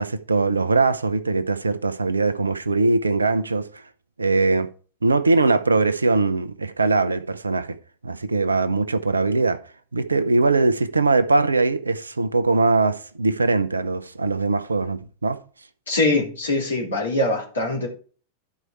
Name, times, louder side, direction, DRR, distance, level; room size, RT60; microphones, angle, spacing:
voice 1, 0.0-3.8 4.2-4.7 5.0-7.8 8.0-9.6 9.9-15.4, right 3 dB, 80° right, 0.6 m, -21 dB
voice 2, 15.9-17.9, left 2 dB, 70° left, 3.0 m, -23 dB
12.0 x 4.8 x 4.7 m
figure-of-eight pair, 90°, 0 cm